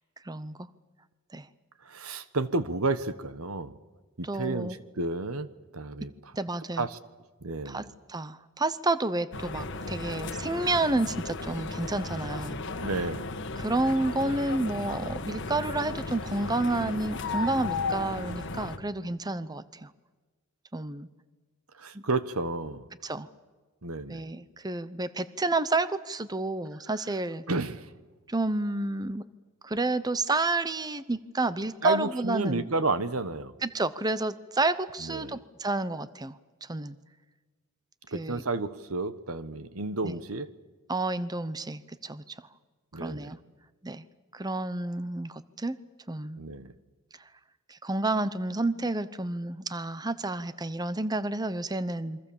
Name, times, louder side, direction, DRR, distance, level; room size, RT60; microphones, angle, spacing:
voice 1, 0.2-0.7 1.3-1.5 4.2-4.8 6.4-6.9 7.7-7.8 8.1-12.6 13.6-19.9 20.7-21.1 21.9-22.0 23.0-23.3 24.1-27.4 28.3-29.2 29.6-32.7 33.6-37.0 38.1-38.4 40.0-40.2 40.9-42.3 42.9-43.4 43.8-44.0 44.3-45.8 46.1-46.4 47.7-52.2, right 2 dB, 20° right, 14 dB, 0.8 m, -30 dB
voice 2, 1.8-3.8 4.2-5.5 5.7-6.1 6.8-7.0 7.4-7.9 12.8-13.3 21.7-22.9 23.8-24.2 27.5-27.9 31.8-33.5 35.0-35.4 38.1-40.5 42.9-43.4 46.4-46.7, right 3 dB, 90° right, 13 dB, 1.4 m, -31 dB
sound 1, 9.3-18.8, left 3 dB, 60° left, 1.7 m, -35 dB
28.0 x 24.0 x 7.3 m, 1.3 s
head